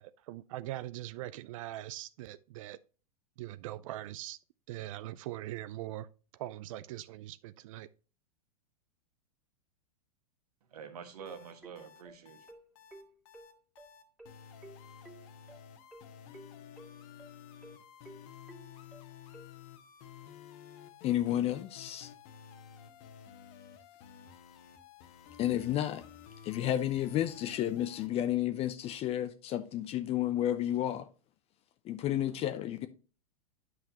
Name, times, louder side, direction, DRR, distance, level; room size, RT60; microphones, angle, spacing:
voice 1, 0.0-2.8 3.4-4.4 4.7-6.1 6.4-7.9, right 14 dB, 55° right, 0.4 m, -41 dB
voice 2, 10.7-12.5 32.3-32.4, right 7 dB, 75° right, 1.5 m, -47 dB
sound 1, 11.2-28.1, left 8 dB, 50° left, 1.1 m, -53 dB
sound 2, 11.2-19.5, right 2 dB, 5° right, 2.3 m, -54 dB
voice 3, 21.0-22.1 25.4-26.0 26.4-31.1 31.8-32.9, left 12 dB, 30° left, 0.5 m, -31 dB
9.3 x 5.8 x 2.8 m
hypercardioid pair, 110°, 20 cm